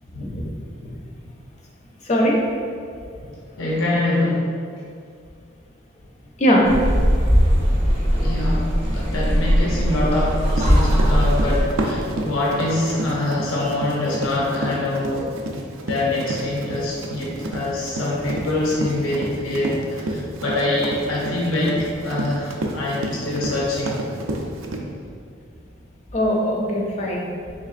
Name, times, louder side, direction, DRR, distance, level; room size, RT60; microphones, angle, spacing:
voice 1, 0.1-0.5 0.8-0.9 2.0-2.4 6.4-6.7 26.1-27.3, equal, 35° left, -2 dB, 0.5 m, -20 dB
voice 2, 3.6-4.5 8.1-15.3 15.9-24.0, left 2 dB, 85° left, -5 dB, 0.6 m, -24 dB
sound 1, 6.6-11.6, equal, 30° right, 0.6 m, -19 dB
Run, 10.5-24.8, right 1 dB, 90° right, 0.4 m, -30 dB
3.7 x 3.3 x 2.4 m, 2.3 s
head